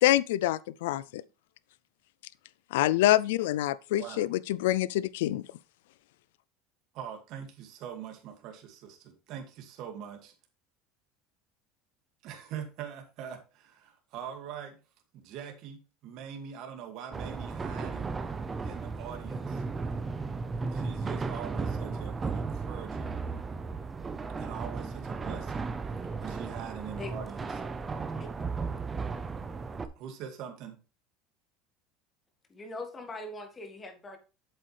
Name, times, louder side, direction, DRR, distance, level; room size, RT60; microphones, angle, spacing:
voice 1, 0.0-1.2 2.7-5.4, left 14 dB, 90° left, 0.3 m, -26 dB
voice 2, 6.9-10.3 12.2-14.8 15.1-18.1 18.6-19.6 20.7-23.2 24.4-25.7 26.2-27.5 30.0-30.8, right 8 dB, 60° right, 2.1 m, -43 dB
sound 1, 17.1-29.9, right 4 dB, 20° right, 0.8 m, -35 dB
voice 3, 28.1-28.8 32.5-34.2, left 2 dB, 20° left, 1.8 m, -42 dB
8.1 x 7.6 x 3.3 m
supercardioid pair, 125°, 0 cm